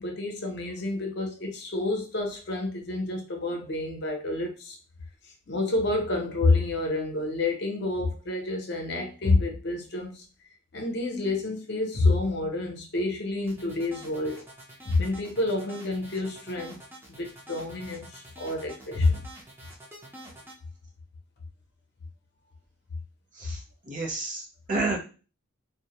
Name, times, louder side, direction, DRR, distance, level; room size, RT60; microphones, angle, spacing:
voice 1, 0.0-4.8 5.5-10.2 10.7-14.4 14.8-16.8 17.1-19.3, left 2 dB, 55° left, 0.6 m, -28 dB
sound 1, 13.5-20.6, right 1 dB, 10° right, 0.4 m, -47 dB
voice 2, 23.3-25.0, right 3 dB, 40° right, 0.7 m, -31 dB
2.1 x 2.1 x 2.8 m
head